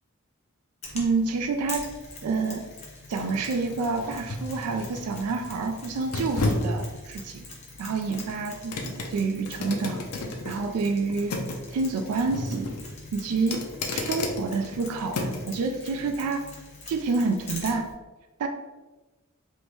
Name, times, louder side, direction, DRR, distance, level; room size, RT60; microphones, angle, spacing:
Mechanisms, 0.8-17.9, left 2 dB, 30° left, 0.7 m, -44 dB
sound 1, 0.9-15.6 16.0-16.2, left 2 dB, 90° left, 0.6 m, -34 dB
voice 1, 0.9-1.9 2.2-2.6 3.1-7.4 7.8-10.0 10.4-11.4 11.7-12.7 13.1-13.6 13.9-16.4 16.9-17.9 18.4-18.5, right 4 dB, 80° right, 6 dB, 0.3 m, -28 dB
3.5 x 2.5 x 3.0 m, 1.2 s
head